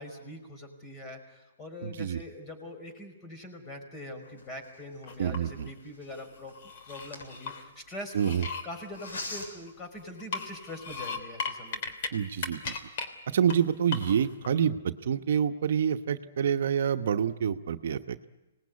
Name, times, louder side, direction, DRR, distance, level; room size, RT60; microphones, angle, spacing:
voice 1, 0.0-6.5 6.8-8.3 8.6-11.8, left 1 dB, 20° left, 6 dB, 5.3 m, -43 dB
voice 2, 1.8-2.2 5.2-5.7 8.1-8.4 12.1-12.8 13.3-18.3, right 8 dB, 65° right, 8 dB, 1.1 m, -27 dB
sound 1, 4.3-8.2 8.9-9.7 10.3-10.4 10.8-11.3, left 2 dB, 80° left, 7.6 m, -44 dB
sound 2, 5.1-5.7 6.2-7.6 8.1-9.8 10.2-12.1 12.4-13.1 13.5-13.6 13.9-14.5, left 5 dB, 50° left, 3.2 m, -37 dB
25.5 x 19.5 x 9.7 m, 1.1 s
hypercardioid pair, 140°, 0 cm